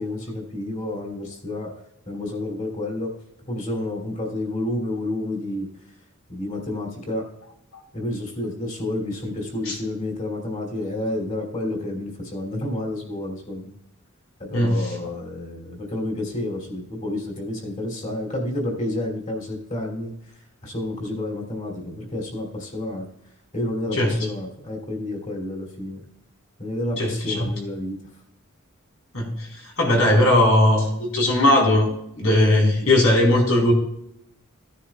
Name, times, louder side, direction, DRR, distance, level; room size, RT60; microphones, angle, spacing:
voice 1, 0.0-1.7 2.1-3.1 3.5-5.7 6.3-7.3 7.9-13.8 14.4-20.1 20.6-23.0 23.5-26.0 26.6-28.0, left 1 dB, 35° left, 0 dB, 3.0 m, -30 dB
voice 2, 14.5-15.0 23.9-24.2 27.0-27.5 29.1-33.7, left 1 dB, 85° left, -2 dB, 4.4 m, -19 dB
16.5 x 10.0 x 2.4 m, 0.77 s
head